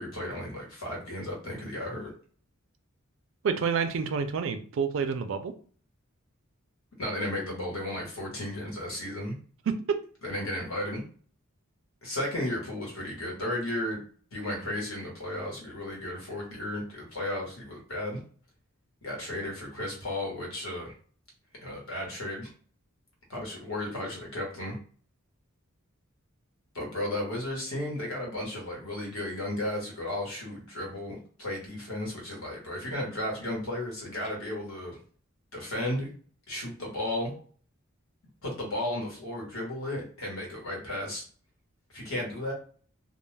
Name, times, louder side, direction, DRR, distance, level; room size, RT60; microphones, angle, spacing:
voice 1, 0.0-2.1 7.0-9.4 10.2-11.0 12.0-14.0 14.3-18.2 19.0-20.9 21.6-22.5 23.3-24.8 26.7-35.0 35.5-36.1 36.5-37.3 38.4-41.2 41.9-42.5, left 1 dB, 70° left, -1 dB, 1.1 m, -34 dB
voice 2, 3.4-5.5 9.7-9.8, right 6 dB, 65° right, 8 dB, 0.4 m, -28 dB
2.3 x 2.2 x 3.2 m, 0.44 s
head